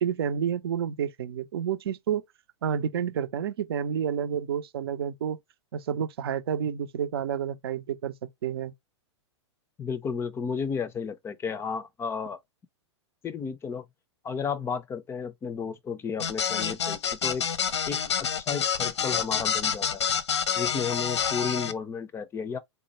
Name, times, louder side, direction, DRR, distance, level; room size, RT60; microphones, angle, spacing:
voice 1, 0.0-2.2 2.6-5.4 5.7-8.1 8.4-8.7, right 8 dB, 55° right, 0.6 m, -29 dB
voice 2, 9.8-12.4 13.2-13.8 14.2-17.5 17.9-20.0 20.6-22.6, left 6 dB, 15° left, 0.5 m, -33 dB
sound 1, 16.2-21.7, left 7 dB, 70° left, 0.6 m, -28 dB
4.2 x 2.1 x 2.9 m
figure-of-eight pair, 100°, 15 cm